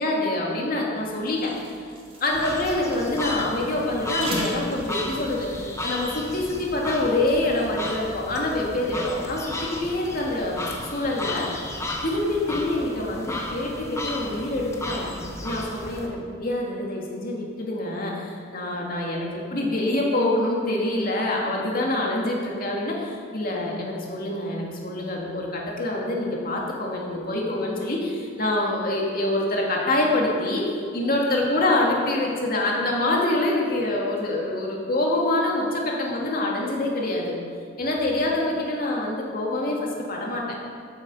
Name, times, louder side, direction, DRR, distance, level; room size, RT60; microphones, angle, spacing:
voice 1, 0.0-1.5 2.2-10.6 10.9-11.5 12.0-15.1 15.4-37.4 37.8-40.6, left 1 dB, 50° left, -2 dB, 2.4 m, -26 dB
sound 1, 1.0-6.6, right 1 dB, 30° right, 2.4 m, -39 dB
sound 2, 2.3-16.1, left 2 dB, 15° left, 1.2 m, -34 dB
13.0 x 10.0 x 5.7 m, 2.2 s
head